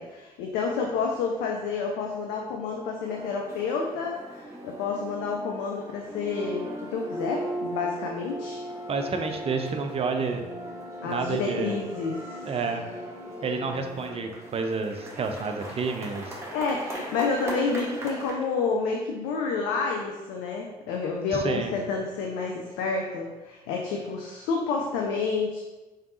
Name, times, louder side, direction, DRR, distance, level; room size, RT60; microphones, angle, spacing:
voice 1, 0.0-8.6 11.0-12.5 16.5-25.6, left 4 dB, 60° left, 0 dB, 0.5 m, -29 dB
sound 1, 3.0-18.3, right 1 dB, 15° right, 1.2 m, -38 dB
voice 2, 8.9-10.4 11.0-11.8 12.5-12.8 13.4-16.4 21.4-21.7, right 4 dB, 30° right, 5 dB, 0.5 m, -29 dB
3.9 x 3.4 x 2.6 m, 1.1 s
figure-of-eight pair, 45°, 19 cm